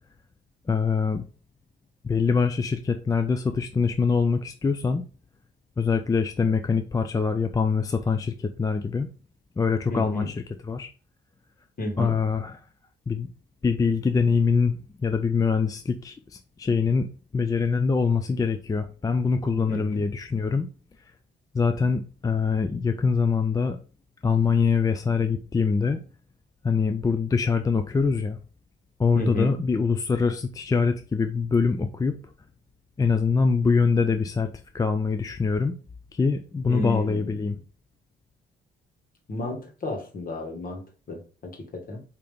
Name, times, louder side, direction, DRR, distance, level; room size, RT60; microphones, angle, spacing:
voice 1, 0.7-1.2 2.0-5.0 5.8-9.1 9.6-10.9 12.0-12.6 13.1-13.3 13.6-20.7 21.5-23.8 24.2-26.0 26.6-28.4 29.0-32.2 33.0-35.8 36.1-37.6, left 5 dB, 20° left, 0.4 m, -24 dB
voice 2, 9.9-10.3 11.8-12.1 19.7-20.0 29.1-29.5 36.7-37.6 39.3-42.0, left 1 dB, 45° left, 1.6 m, -32 dB
5.0 x 2.9 x 3.5 m
cardioid pair, 90°, 20 cm